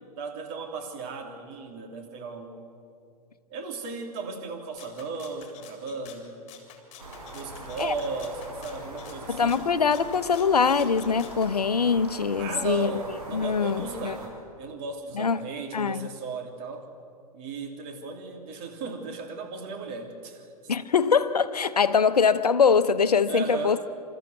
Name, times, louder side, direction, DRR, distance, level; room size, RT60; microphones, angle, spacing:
voice 1, 0.0-2.6 3.5-6.5 7.2-9.7 12.4-16.9 17.3-20.4 23.3-23.8, right 4 dB, 45° right, 3.1 m, -36 dB
Rattle (instrument), 4.8-11.5, left 9 dB, 35° left, 3.2 m, -49 dB
sound 1, 7.0-14.3, right 1 dB, 85° right, 5.7 m, -42 dB
voice 2, 9.3-12.9 13.3-14.2 15.2-15.5 15.7-16.1 20.7-23.8, left 6 dB, 80° left, 0.9 m, -23 dB
28.0 x 13.5 x 8.0 m
figure-of-eight pair, 105°, 20 cm